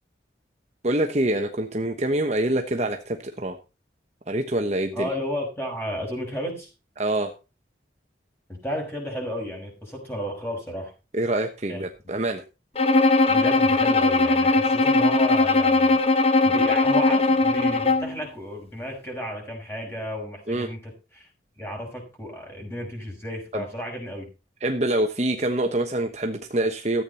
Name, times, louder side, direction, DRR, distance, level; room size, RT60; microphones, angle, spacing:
voice 1, 0.8-3.6 4.3-5.1 7.0-7.3 11.1-12.4 20.5-20.7 23.5-23.6 24.6-27.0, right 1 dB, 35° right, 4 dB, 1.1 m, -25 dB
voice 2, 4.9-6.7 8.5-10.9 11.7-11.8 13.3-21.3 21.6-24.3, equal, 15° left, 1 dB, 5.8 m, -33 dB
Bowed string instrument, 12.8-18.2, left 3 dB, 35° left, 1.2 m, -19 dB
14.0 x 8.7 x 4.2 m, 0.30 s
head